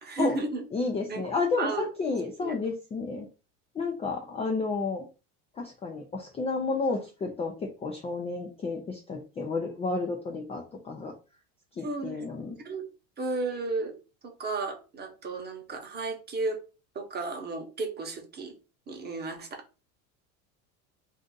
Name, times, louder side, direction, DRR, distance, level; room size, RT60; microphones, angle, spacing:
voice 1, 0.0-0.6 1.1-1.2 1.6-1.9 2.4-2.5 11.8-12.9 13.2-13.9 14.2-16.6 16.9-18.5 18.9-19.5, right 3 dB, 25° right, 3 dB, 0.9 m, -33 dB
voice 2, 0.7-3.3 3.7-5.1 5.6-11.1 11.8-12.6, left 4 dB, 15° left, 2 dB, 0.3 m, -31 dB
2.6 x 2.4 x 3.7 m, 0.33 s
supercardioid pair, 115°, 40 cm